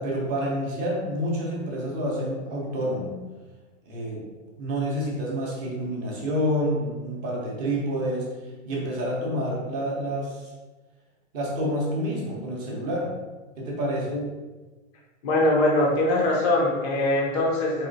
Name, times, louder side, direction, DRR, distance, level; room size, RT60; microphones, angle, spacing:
voice 1, 0.0-3.1 3.9-4.3 4.6-8.4 8.6-10.5 11.3-13.1 13.6-14.2, equal, 20° right, -3 dB, 0.7 m, -28 dB
voice 2, 15.2-17.9, left 1 dB, 15° left, -3 dB, 0.5 m, -22 dB
4.3 x 2.9 x 3.9 m, 1.2 s
supercardioid pair, 170°, 39 cm